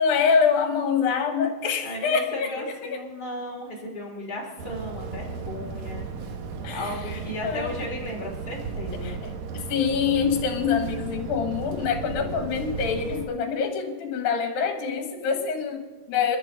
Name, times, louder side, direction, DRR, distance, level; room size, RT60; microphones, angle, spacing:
voice 1, 0.0-3.0 6.6-7.2 7.4-7.7 9.0-16.4, left 6 dB, 80° left, 5 dB, 3.2 m, -25 dB
voice 2, 1.8-6.1 6.7-9.2, left 1 dB, 30° left, -1 dB, 2.8 m, -35 dB
sound 1, 4.6-13.3, right 5 dB, 65° right, 2.1 m, -35 dB
22.5 x 11.0 x 3.9 m, 1.2 s
omnidirectional pair, 4.2 m